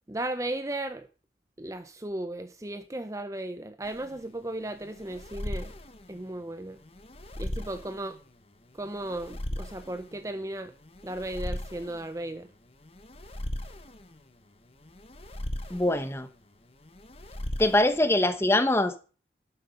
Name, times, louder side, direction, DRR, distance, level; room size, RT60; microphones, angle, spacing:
voice 1, 0.1-1.1 1.6-5.7 6.1-6.8 7.4-8.2 8.8-10.7 11.0-12.5, right 1 dB, 20° right, 0.6 m, -35 dB
sound 1, 3.8-18.4, left 1 dB, 35° left, 1.2 m, -39 dB
voice 2, 15.7-16.3 17.6-19.0, left 1 dB, 15° left, 1.0 m, -23 dB
12.0 x 8.0 x 5.1 m
head